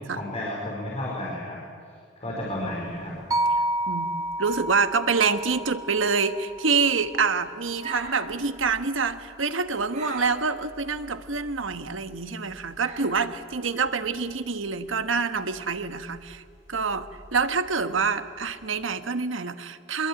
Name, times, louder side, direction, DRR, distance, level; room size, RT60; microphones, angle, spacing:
voice 1, 0.1-1.6 2.2-3.2, left 1 dB, 35° left, -3 dB, 4.9 m, -32 dB
sound 1, 2.4-19.0, right 3 dB, 40° right, 7.9 m, -48 dB
sound 2, 3.3-7.5, right 1 dB, 20° right, 1.1 m, -30 dB
voice 2, 3.9-16.4 16.7-20.1, right 5 dB, 85° right, 10 dB, 1.3 m, -26 dB
26.0 x 21.0 x 8.9 m, 2.2 s
head